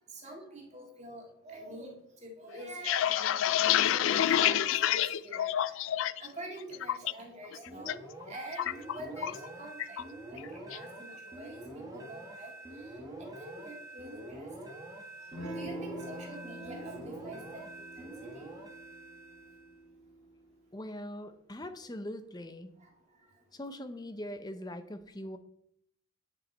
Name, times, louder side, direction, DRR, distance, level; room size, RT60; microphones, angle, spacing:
voice 1, 0.1-3.6 3.9-5.8 6.2-10.0 10.3-10.4 10.7-12.5 13.4-14.5 15.2-18.5 22.8-22.9, right 1 dB, 35° right, -1 dB, 1.8 m, -46 dB
sound 1, 2.6-6.3 6.6-7.1 7.5-7.9 8.2-9.5 9.8-10.0 10.4-10.8, left 11 dB, 70° left, 0.3 m, -28 dB
sound 2, 7.7-19.8, right 2 dB, 15° right, 1.1 m, -46 dB
Electric guitar / Strum, 15.3-20.4, right 1 dB, 60° right, 2.7 m, -45 dB
voice 2, 20.7-22.7 23.5-25.4, left 1 dB, 20° left, 9 dB, 0.6 m, -41 dB
9.6 x 5.1 x 4.3 m, 0.71 s
head